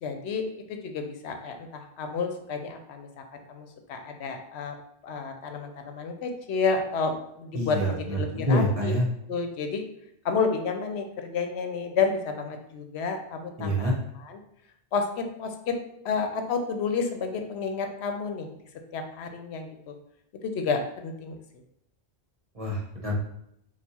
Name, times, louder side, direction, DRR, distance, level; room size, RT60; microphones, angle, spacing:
voice 1, 0.0-4.7 5.0-8.9 9.3-9.8 10.2-13.9 14.2-14.4 14.9-15.8 16.0-18.5 18.9-19.9 20.4-21.4, left 5 dB, 80° left, 5 dB, 0.9 m, -30 dB
voice 2, 7.5-9.1 13.6-13.9 22.5-23.1, equal, 35° right, -3 dB, 1.1 m, -26 dB
4.4 x 2.3 x 4.1 m, 0.75 s
omnidirectional pair, 1.1 m